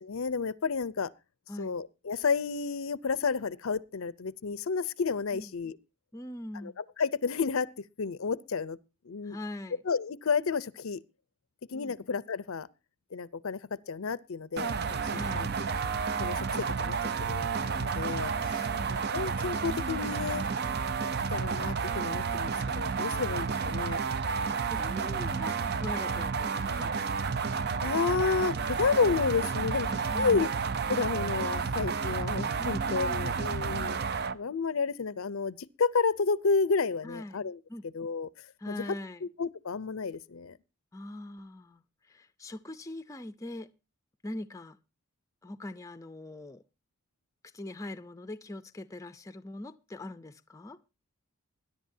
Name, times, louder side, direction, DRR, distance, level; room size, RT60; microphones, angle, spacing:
voice 1, 0.0-1.1 1.6-5.8 6.6-7.7 8.0-8.8 9.1-9.4 9.8-11.0 11.7-12.7 13.1-13.6 13.9-15.8 16.2-16.5 16.8-20.4 21.3-24.0 27.8-30.5 30.9-34.0 34.3-37.6 37.9-38.3 38.7-38.9 39.2-40.5, left 5 dB, 65° left, 0.6 m, -31 dB
voice 2, 6.1-6.8 9.2-9.8 11.7-12.0 15.1-15.5 18.0-18.9 20.6-20.9 23.0-23.3 24.6-26.9 30.1-30.5 32.6-33.3 37.0-37.4 37.7-37.9 38.6-39.2 40.9-41.8 42.1-43.7 44.2-44.8 45.4-46.6 47.5-50.8, left 1 dB, 15° left, 0.5 m, -42 dB
sound 1, 14.6-34.4, right 5 dB, 45° right, 0.6 m, -31 dB
21.0 x 11.0 x 2.7 m
head